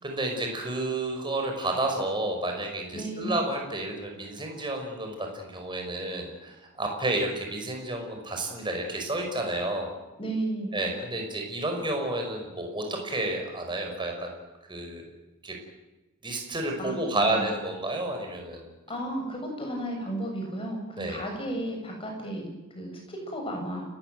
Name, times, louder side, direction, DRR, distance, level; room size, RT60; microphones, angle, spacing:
voice 1, 0.0-10.0 10.7-14.3 14.7-15.0 15.4-15.5 16.2-18.7 21.0-21.2, right 2 dB, 20° right, 2 dB, 5.4 m, -30 dB
voice 2, 2.9-3.4 10.2-10.8 16.8-17.4 18.9-22.5 22.7-23.9, right 1 dB, 25° left, 1 dB, 7.6 m, -33 dB
29.5 x 15.0 x 9.2 m, 1.1 s
head